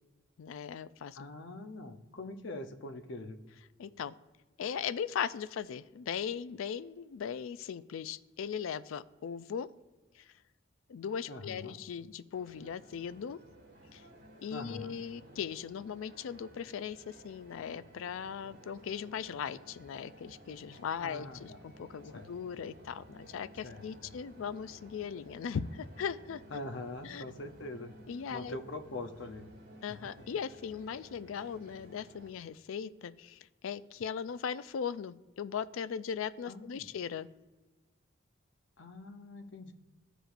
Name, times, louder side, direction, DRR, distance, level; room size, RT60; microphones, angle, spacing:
voice 1, 0.4-1.2 3.8-4.1 4.6-9.7 10.1-10.3 10.9-13.4 13.9-14.0 14.4-26.4 27.0-27.2 28.1-28.6 29.8-37.3, left 7 dB, 85° left, 15 dB, 0.4 m, -39 dB
voice 2, 1.2-3.4 11.3-11.8 14.5-15.0 21.0-21.6 22.1-22.3 23.6-23.8 26.5-28.0 28.3-29.5 36.4-36.9 38.8-39.7, left 2 dB, 65° left, 6 dB, 0.7 m, -43 dB
sound 1, 12.3-32.3, equal, 65° right, 2.3 m, -55 dB
14.5 x 5.0 x 2.5 m, 1.2 s
head